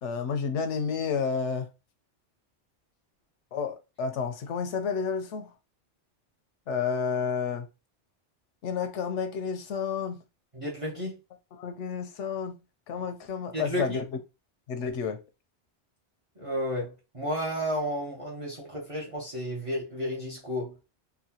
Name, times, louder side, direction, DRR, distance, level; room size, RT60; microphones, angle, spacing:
voice 1, 0.0-1.7 3.5-5.5 6.7-7.7 8.6-10.2 11.6-12.6 12.9-14.0 14.7-15.2, left 6 dB, 85° left, 1.0 m, -30 dB
voice 2, 10.5-11.2 13.5-14.0 16.4-20.8, equal, 30° right, 0.8 m, -32 dB
4.0 x 2.3 x 2.8 m
omnidirectional pair, 1.2 m